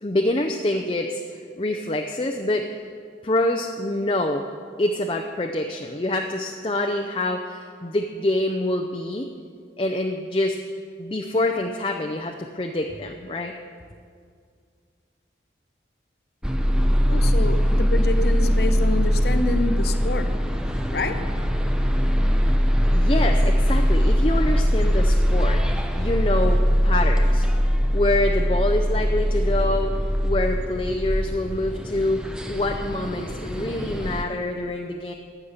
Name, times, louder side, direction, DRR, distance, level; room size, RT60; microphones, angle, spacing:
voice 1, 0.0-2.8 3.2-4.5 4.8-9.3 9.8-10.6 11.0-13.5 22.9-25.7 26.0-27.5 27.9-29.9 30.2-35.1, left 1 dB, 30° left, 3 dB, 0.6 m, -26 dB
sound 1, 16.4-34.2, equal, 5° right, 0.7 m, -21 dB
voice 2, 17.1-20.3 20.9-21.2, left 2 dB, 60° left, 7 dB, 0.8 m, -27 dB
15.0 x 8.5 x 6.7 m, 2.2 s
head